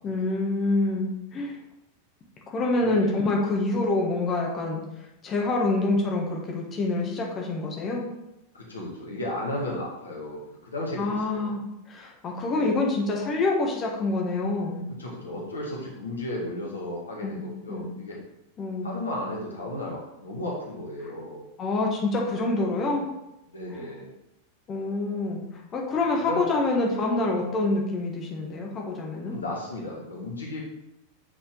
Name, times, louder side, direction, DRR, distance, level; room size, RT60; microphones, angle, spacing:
voice 1, 0.0-1.6 2.5-4.8 5.2-8.1 11.0-14.8 17.2-17.4 17.7-17.9 18.6-18.9 21.6-23.1 23.7-23.9 24.7-29.3, left 2 dB, 25° left, -1 dB, 1.4 m, -26 dB
voice 2, 8.5-11.5 12.5-12.7 15.0-18.2 18.8-21.5 23.5-24.1 26.3-26.5 29.3-30.6, left 1 dB, 75° left, -3 dB, 1.8 m, -34 dB
8.2 x 4.3 x 3.8 m, 0.88 s
figure-of-eight pair, 90°, 0 cm